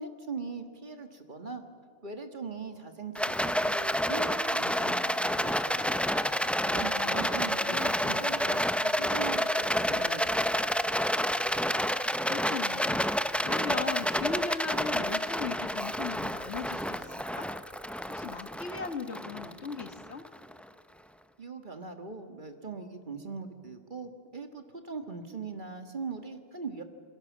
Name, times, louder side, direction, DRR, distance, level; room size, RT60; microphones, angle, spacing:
voice 1, 0.0-1.6 2.0-6.0 6.6-7.8 8.0-10.7 21.4-26.8, right 4 dB, 40° right, 6 dB, 1.8 m, -40 dB
Rattle, 3.1-20.5, equal, ahead, 0.4 m, -29 dB
voice 2, 6.7-8.2 12.3-13.1 13.4-17.5 18.1-20.3, left 5 dB, 65° left, 8 dB, 1.7 m, -38 dB
28.0 x 21.5 x 7.4 m, 2.3 s
omnidirectional pair, 1.2 m